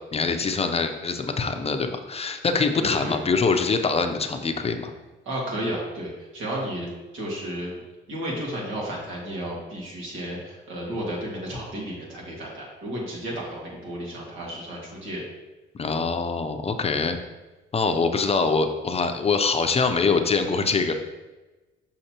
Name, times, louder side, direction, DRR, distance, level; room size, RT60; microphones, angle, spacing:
voice 1, 0.1-4.9 15.7-17.2 17.7-20.9, left 4 dB, 30° left, 7 dB, 0.6 m, -24 dB
voice 2, 2.8-3.2 5.3-6.9 7.1-7.8 8.1-15.2, equal, 85° right, -3 dB, 2.0 m, -32 dB
6.6 x 5.5 x 2.9 m, 1.1 s
cardioid pair, 90°, 20 cm